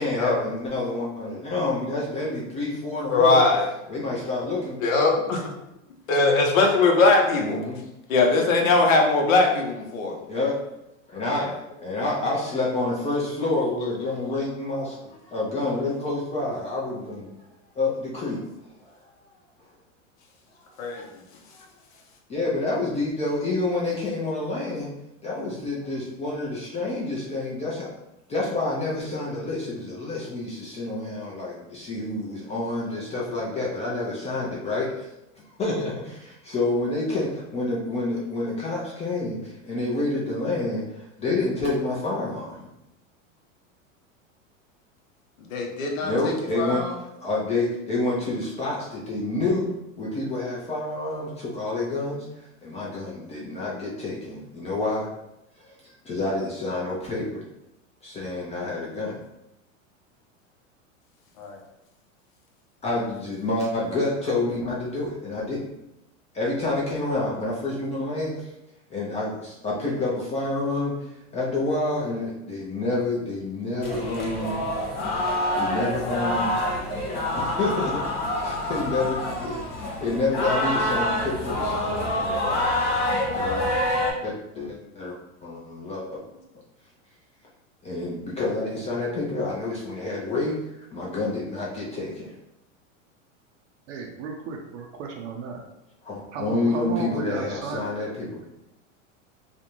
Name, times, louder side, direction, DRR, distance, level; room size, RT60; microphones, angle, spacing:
voice 1, 0.0-3.4 3.9-4.8 7.4-7.8 10.3-10.6 11.1-11.5 11.8-17.3 17.8-18.4 20.9-21.0 21.6-21.7 22.3-24.9 25.2-27.9 28.3-35.1 35.4-42.7 46.0-46.8 47.2-52.3 52.6-55.1 55.6-57.4 58.0-59.2 62.8-65.7 66.3-68.5 68.9-70.9 71.3-74.6 75.5-76.5 77.4-82.8 83.1-83.8 84.2-85.2 85.4-86.2 87.8-90.5 90.9-92.3 96.1-98.4, left 2 dB, 20° left, -5 dB, 0.4 m, -28 dB
voice 2, 3.1-3.7 4.8-5.5 6.1-7.6 8.1-10.2 11.3-11.5 12.0-12.2 20.8-21.1 45.4-47.0 61.4-61.6, left 3 dB, 80° left, 1 dB, 0.8 m, -21 dB
sound 1, 73.8-84.1, left 1 dB, 50° left, 0.9 m, -26 dB
voice 3, 93.9-95.6 96.3-97.8, right 4 dB, 65° right, 1 dB, 0.6 m, -34 dB
2.5 x 2.1 x 2.9 m, 0.89 s
hypercardioid pair, 110°, 40 cm